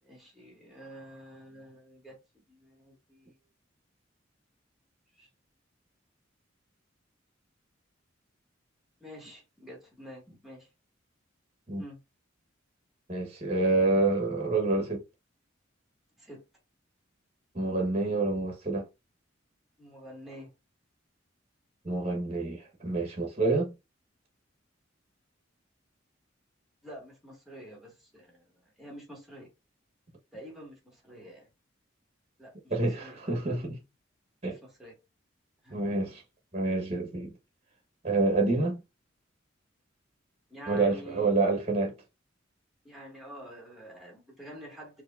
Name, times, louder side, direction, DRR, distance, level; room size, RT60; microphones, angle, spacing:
voice 1, 0.0-2.2 2.5-3.3 5.2-5.3 9.0-10.7 11.8-12.0 16.2-16.4 19.8-20.5 26.8-29.5 30.3-31.5 32.4-32.7 33.0-33.4 34.5-34.9 35.6-35.8 40.5-41.3 42.8-45.0, equal, ahead, 1.6 m, -48 dB
voice 2, 13.1-15.0 17.5-18.9 21.8-23.7 32.7-33.8 34.4-34.6 35.7-36.2 36.5-37.3 38.0-38.8 40.7-41.9, right 3 dB, 35° right, 1.1 m, -27 dB
4.7 x 2.9 x 2.4 m
head